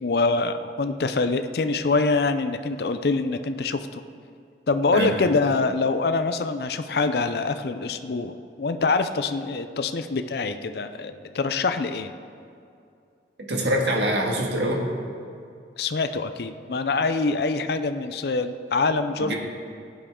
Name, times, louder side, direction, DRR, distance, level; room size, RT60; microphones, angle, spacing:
voice 1, 0.0-4.0 4.7-12.1 15.8-19.3, left 3 dB, 60° left, 9 dB, 0.5 m, -25 dB
voice 2, 13.5-14.8 19.2-19.3, right 1 dB, 75° right, -1 dB, 1.8 m, -24 dB
16.0 x 9.2 x 3.7 m, 2.4 s
head